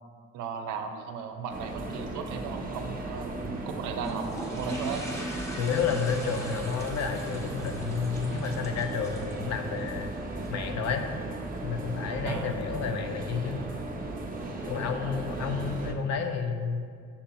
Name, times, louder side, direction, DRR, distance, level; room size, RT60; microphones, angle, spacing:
voice 1, 0.3-5.0 12.2-12.6 15.3-15.7, right 6 dB, 80° right, 6 dB, 0.5 m, -36 dB
sound 1, 1.5-15.9, right 2 dB, 30° right, 0.5 m, -36 dB
sound 2, 3.9-10.5, right 1 dB, 10° left, 0.7 m, -40 dB
voice 2, 5.6-10.1 10.5-11.0 11.6-13.6 14.7-16.9, left 6 dB, 60° left, 6 dB, 0.5 m, -30 dB
6.8 x 2.7 x 2.2 m, 2.2 s
cardioid pair, 90°, 30 cm